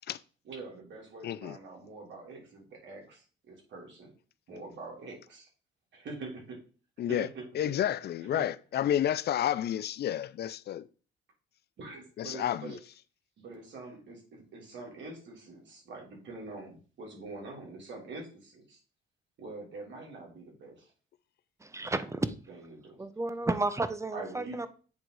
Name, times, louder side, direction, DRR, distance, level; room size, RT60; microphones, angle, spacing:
voice 1, 0.4-4.1 4.5-5.5 5.9-6.6 7.0-7.4 8.3-8.5 11.8-12.8 13.4-18.8 19.4-20.9 22.5-23.0 24.1-24.7, right 3 dB, 70° right, 3.1 m, -44 dB
voice 2, 1.2-1.6 7.0-7.3 7.5-10.9 12.2-12.8, left 11 dB, 55° left, 0.5 m, -30 dB
voice 3, 21.6-22.3 23.0-24.7, right 2 dB, 15° right, 0.7 m, -32 dB
8.4 x 3.7 x 4.7 m
cardioid pair, 90°, 20 cm